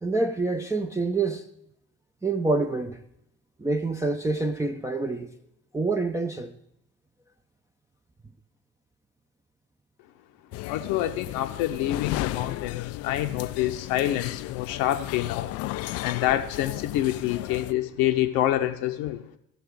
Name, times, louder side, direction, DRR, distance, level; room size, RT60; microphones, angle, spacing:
voice 1, 0.0-1.5 2.2-3.0 3.6-5.3 5.7-6.5, right 3 dB, 5° right, 0.6 m, -26 dB
sound 1, 10.5-17.7, left 17 dB, 40° left, 0.4 m, -34 dB
voice 2, 10.7-15.5 16.0-19.2, left 13 dB, 55° left, 0.8 m, -27 dB
15.5 x 6.5 x 4.7 m
figure-of-eight pair, 60°, 41 cm